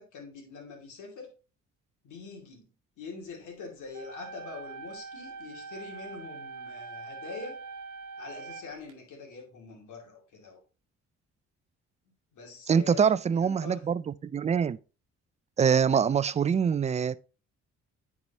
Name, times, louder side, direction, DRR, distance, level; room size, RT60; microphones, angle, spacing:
voice 1, 0.0-1.3 2.0-2.7 3.0-7.6 8.2-10.6 12.3-13.9, left 4 dB, 75° left, 2.5 m, -44 dB
sound 1, 3.9-8.9, right 4 dB, 80° right, 1.0 m, -43 dB
voice 2, 12.7-14.8 15.6-17.2, right 7 dB, 25° right, 0.4 m, -24 dB
9.5 x 4.8 x 2.9 m
cardioid pair, 90°, 30 cm